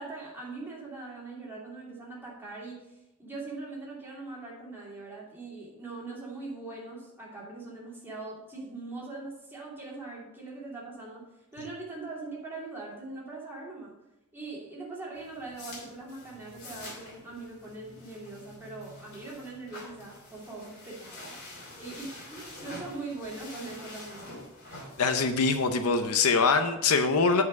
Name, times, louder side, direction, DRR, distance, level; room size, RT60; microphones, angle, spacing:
voice 1, 0.0-11.2 11.5-13.9 14.3-21.4 21.8-24.4, right 3 dB, 10° right, -5 dB, 2.7 m, -41 dB
sound 1, 15.1-26.5, left 1 dB, 50° left, 3.0 m, -47 dB
voice 2, 25.0-27.4, left 4 dB, 75° left, 8 dB, 0.7 m, -23 dB
8.4 x 4.8 x 5.3 m, 0.91 s
head